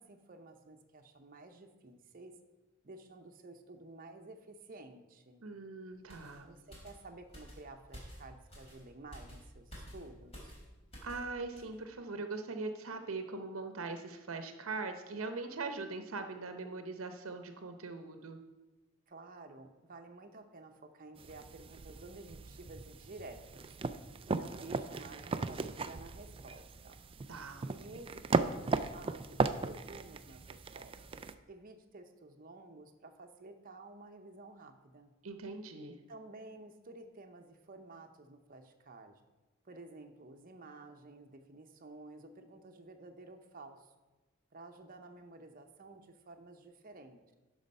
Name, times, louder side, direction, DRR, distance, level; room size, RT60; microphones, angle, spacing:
voice 1, 0.0-2.3 2.8-5.4 6.4-10.5 19.1-23.7 24.3-27.0 27.7-35.1 36.1-39.2 39.6-43.9 44.5-47.2, right 2 dB, 45° right, 5 dB, 0.8 m, -52 dB
voice 2, 5.4-6.5 11.0-18.4 27.3-27.7 35.2-36.0, right 3 dB, 85° right, 7 dB, 0.8 m, -41 dB
sound 1, 6.1-11.3 11.6-11.8, equal, 30° left, 3.2 m, -52 dB
sound 2, 21.2-31.3, right 4 dB, 25° right, 0.3 m, -37 dB
11.5 x 5.0 x 5.4 m, 1.2 s
head